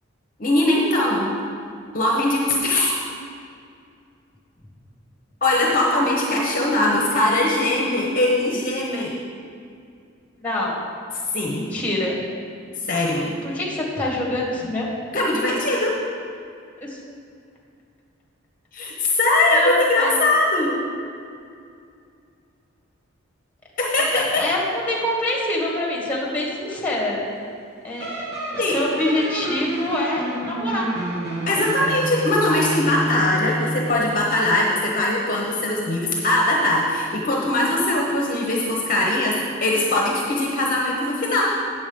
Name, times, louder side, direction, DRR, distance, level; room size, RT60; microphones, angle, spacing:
voice 1, 0.4-1.3 1.9-3.0 5.4-9.1 11.3-11.6 12.8-13.3 15.1-16.0 18.7-20.8 23.8-24.4 28.6-28.8 31.5-41.5, left 1 dB, 40° left, -2 dB, 0.9 m, -21 dB
voice 2, 10.4-10.8 11.5-12.2 13.2-14.9 16.8-17.0 19.5-20.1 24.0-27.3 27.8-28.1 28.5-30.9, left 1 dB, 10° left, -4 dB, 1.9 m, -25 dB
sound 1, 28.0-34.0, equal, 50° right, 1.5 m, -28 dB
9.1 x 7.1 x 5.2 m, 2.4 s
head